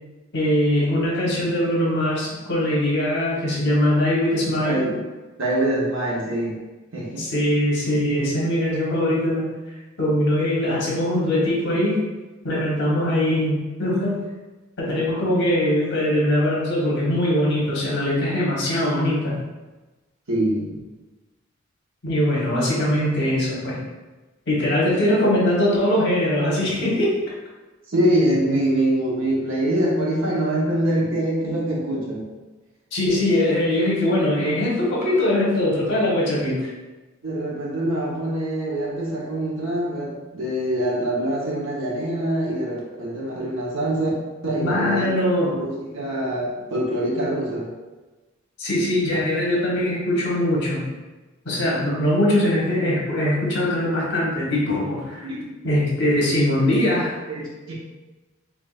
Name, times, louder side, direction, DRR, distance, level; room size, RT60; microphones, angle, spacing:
voice 1, 0.3-4.8 7.2-9.4 10.0-12.0 12.4-14.2 14.8-19.3 22.0-23.8 24.5-27.2 32.9-36.7 44.6-45.6 48.6-50.8 51.4-55.2 55.6-57.1, left 1 dB, 55° left, -4 dB, 1.1 m, -21 dB
voice 2, 4.6-5.0 5.4-6.6 6.9-7.3 20.3-20.8 27.9-32.3 37.2-44.1 44.4-45.1 45.5-47.7 55.2-55.4 57.3-57.7, right 1 dB, 65° right, -4 dB, 1.0 m, -24 dB
3.6 x 3.4 x 2.4 m, 1.2 s
head